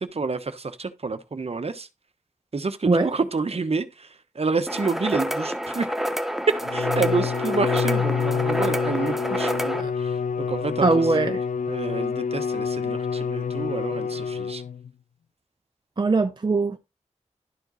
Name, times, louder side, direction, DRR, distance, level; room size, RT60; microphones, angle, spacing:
voice 1, 0.0-1.9 2.5-4.1 4.3-5.9 6.5-10.9 11.7-14.6, right 4 dB, 50° right, 1.1 m, -28 dB
sound 1, 4.7-9.8, equal, ahead, 1.1 m, -28 dB
Bowed string instrument, 6.6-14.9, left 6 dB, 70° left, 0.4 m, -27 dB
voice 2, 10.8-11.4 16.0-16.8, right 3 dB, 35° right, 0.8 m, -21 dB
12.0 x 4.6 x 4.0 m
cardioid pair, 55°, 13 cm